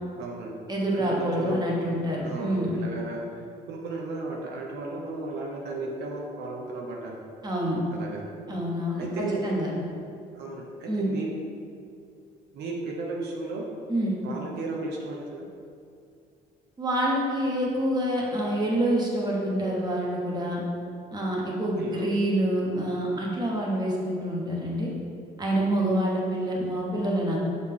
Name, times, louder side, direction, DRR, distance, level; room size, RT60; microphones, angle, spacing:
voice 1, 0.2-0.5 0.9-1.7 2.2-3.2 3.7-7.2 7.9-8.2 9.0-9.5 10.3-11.3 12.5-13.7 14.2-15.5 21.8-22.1 25.5-25.6, right 3 dB, 75° right, -1 dB, 0.8 m, -34 dB
voice 2, 0.7-2.8 7.4-7.8 8.5-9.1 9.4-9.7 10.9-11.1 13.9-14.1 16.8-20.6 21.1-24.9 25.4-27.4, right 1 dB, 25° right, -3 dB, 1.2 m, -27 dB
6.4 x 4.0 x 3.7 m, 2.4 s
cardioid pair, 110°, 17 cm